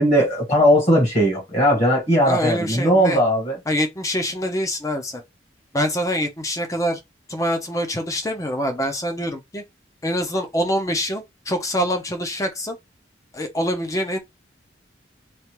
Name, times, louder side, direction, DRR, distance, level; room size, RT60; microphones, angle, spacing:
voice 1, 0.0-3.6, equal, 35° left, 1.3 m, -18 dB
voice 2, 2.2-3.2 3.7-5.2 5.7-7.0 7.3-9.6 10.0-12.8 13.3-14.2, equal, 15° left, 0.6 m, -25 dB
3.2 x 2.4 x 2.9 m
head